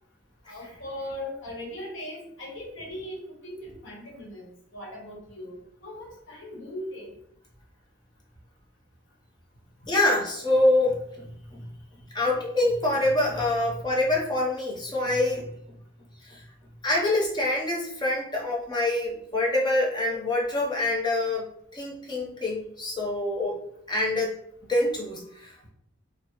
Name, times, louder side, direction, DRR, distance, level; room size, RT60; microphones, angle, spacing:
voice 1, 0.4-7.1, left 1 dB, 75° left, -2 dB, 1.0 m, -39 dB
voice 2, 9.9-11.7 12.1-15.5 16.2-16.4 16.8-21.4 21.7-23.6 23.9-24.3 24.7-25.7, left 2 dB, 20° left, -2 dB, 0.6 m, -25 dB
3.4 x 2.0 x 2.9 m, 0.71 s
head